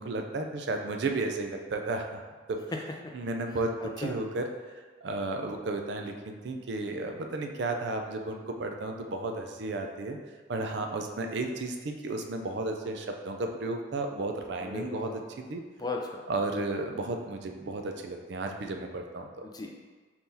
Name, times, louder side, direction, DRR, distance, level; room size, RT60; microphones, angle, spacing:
voice 1, 0.0-2.2 2.5-2.6 3.1-4.5 5.0-10.2 10.5-15.1 15.5-15.6 16.3-19.3, right 2 dB, 60° right, 4 dB, 0.4 m, -33 dB
voice 2, 3.8-4.2 14.6-15.2 15.8-16.2 19.4-19.7, left 3 dB, 20° left, 2 dB, 0.3 m, -37 dB
4.4 x 3.7 x 2.7 m, 1.4 s
head